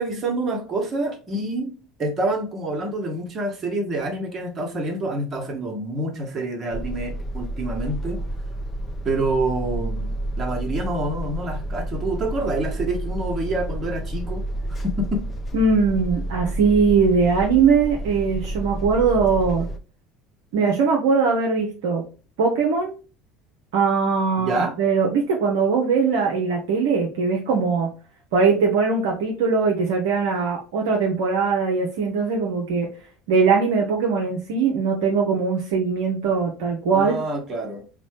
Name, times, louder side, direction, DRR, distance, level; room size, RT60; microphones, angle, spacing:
voice 1, 0.0-1.7 2.0-8.2 9.0-14.4 14.8-15.2 24.4-24.7 36.9-37.9, right 2 dB, 35° right, 3 dB, 1.1 m, -27 dB
sound 1, 6.7-19.8, right 1 dB, 30° left, 0.5 m, -30 dB
voice 2, 15.5-19.7 20.5-22.0 22.4-22.9 23.7-27.9 28.3-32.9 33.3-37.2, right 5 dB, 65° right, 0 dB, 0.6 m, -21 dB
3.9 x 2.2 x 3.1 m, 0.36 s
figure-of-eight pair, 65°, 0 cm